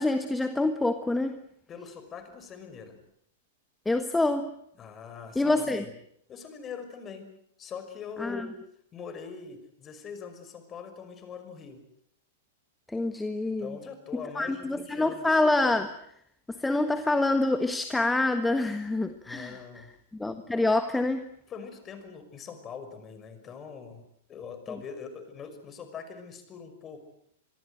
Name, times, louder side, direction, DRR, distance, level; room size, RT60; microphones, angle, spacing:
voice 1, 0.0-1.4 3.8-4.5 5.3-5.8 8.2-8.5 12.9-13.8 14.4-15.9 16.5-19.6 20.1-21.2, left 2 dB, 5° left, 9 dB, 1.5 m, -26 dB
voice 2, 1.7-3.0 4.8-5.9 6.3-7.3 7.6-8.6 8.9-11.8 13.5-15.4 19.2-19.9 21.5-24.0 24.3-27.0, left 6 dB, 25° left, 9 dB, 5.8 m, -42 dB
26.5 x 22.5 x 7.9 m, 0.71 s
figure-of-eight pair, 100°, 0 cm